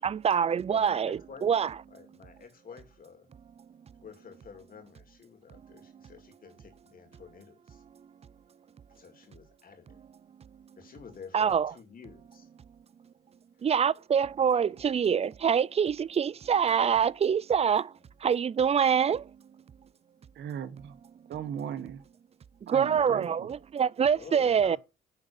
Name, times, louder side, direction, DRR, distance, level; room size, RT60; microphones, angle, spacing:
voice 1, 0.0-1.7 11.3-11.7 13.6-17.9 18.2-19.2 22.7-24.8, right 7 dB, 30° right, 0.4 m, -25 dB
voice 2, 0.7-1.5 1.9-3.3 4.0-7.8 8.9-10.0 10.8-12.5 13.6-13.7 14.6-14.8 18.0-18.1 22.9-23.2 24.1-24.8, left 6 dB, 45° left, 2.8 m, -49 dB
voice 3, 20.3-21.0 21.3-22.0 22.7-23.5, right 8 dB, 65° right, 1.3 m, -37 dB
10.5 x 3.8 x 7.1 m
cardioid pair, 90°, 20 cm